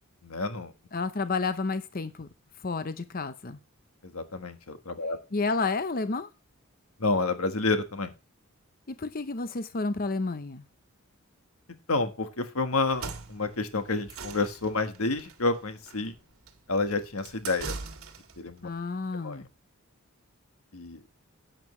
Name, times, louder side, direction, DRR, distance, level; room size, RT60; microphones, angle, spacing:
voice 1, 0.2-0.7 4.1-5.2 7.0-8.1 11.9-16.1 16.7-17.7 18.4-18.7 19.2-19.4 20.7-21.0, left 3 dB, 75° left, 8 dB, 1.5 m, -29 dB
voice 2, 0.9-2.3 2.6-3.6 5.3-6.3 8.9-10.6 18.6-19.5, left 3 dB, 40° left, 11 dB, 0.7 m, -30 dB
sound 1, 12.8-18.5, right 4 dB, 70° right, 2.0 m, -42 dB
11.0 x 9.0 x 3.2 m, 0.27 s
head